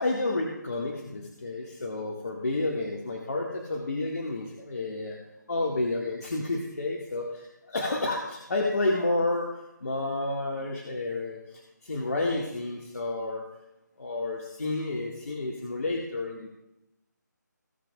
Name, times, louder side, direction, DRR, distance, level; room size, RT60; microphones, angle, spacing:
voice 1, 0.0-5.2 5.5-9.5 9.8-11.4 11.8-13.4 14.0-16.5, left 2 dB, 60° left, -2 dB, 1.9 m, -30 dB
18.0 x 7.2 x 2.4 m, 0.91 s
figure-of-eight pair, 165°, 10 cm